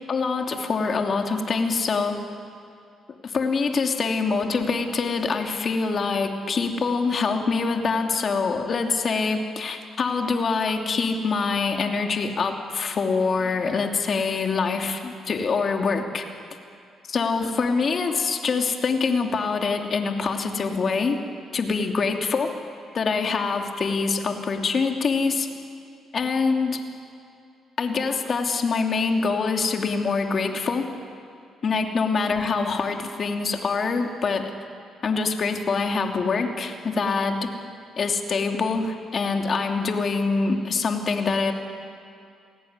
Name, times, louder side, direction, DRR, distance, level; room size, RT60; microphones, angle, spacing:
voice 1, 0.1-2.2 3.2-16.3 17.1-21.2 21.5-22.6 22.9-25.5 26.1-26.8 27.8-30.9 31.6-34.5 35.0-37.5 38.0-41.5, left 4 dB, 45° left, 3 dB, 2.8 m, -25 dB
28.0 x 18.5 x 9.7 m, 2.4 s
cardioid pair, 90°, 0 cm